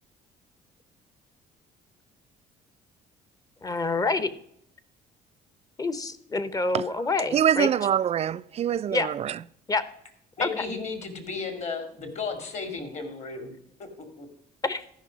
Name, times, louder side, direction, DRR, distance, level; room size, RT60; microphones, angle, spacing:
voice 1, 3.6-4.3 5.8-7.7 8.9-9.1 9.7-9.8 10.4-10.7 14.6-14.8, left 3 dB, 20° left, 0.8 m, -27 dB
voice 2, 7.3-9.4, right 9 dB, 40° right, 0.4 m, -24 dB
voice 3, 10.4-13.5 14.2-14.3, left 4 dB, 40° left, 2.2 m, -34 dB
13.5 x 5.7 x 5.1 m
cardioid pair, 110°, 17 cm